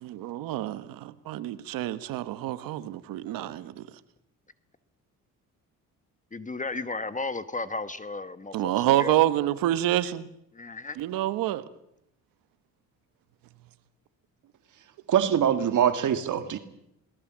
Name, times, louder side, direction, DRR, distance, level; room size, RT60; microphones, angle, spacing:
voice 1, 0.0-3.9 8.5-10.3 10.9-11.6, right 13 dB, 85° right, 1.4 m, -27 dB
voice 2, 6.3-9.1 10.5-11.0, left 3 dB, 25° left, 1.3 m, -34 dB
voice 3, 15.1-16.6, right 9 dB, 65° right, 1.9 m, -23 dB
21.5 x 19.5 x 7.5 m
cardioid pair, 80°, 33 cm